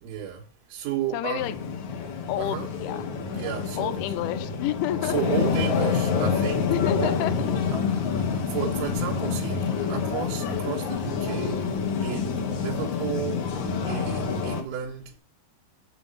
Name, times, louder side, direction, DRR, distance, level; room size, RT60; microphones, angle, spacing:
voice 1, 0.0-0.4 0.7-1.5 2.4-2.7 3.3-4.0 5.0-7.8 8.0-13.6 13.9-15.2, right 10 dB, 85° right, 4.0 m, -33 dB
voice 2, 1.1-1.5 2.3-3.0 3.8-5.2 6.7-7.3, left 13 dB, 90° left, 3.2 m, -29 dB
sound 1, 1.4-14.6, left 6 dB, 65° left, 1.9 m, -27 dB
8.0 x 7.7 x 5.5 m
omnidirectional pair, 5.3 m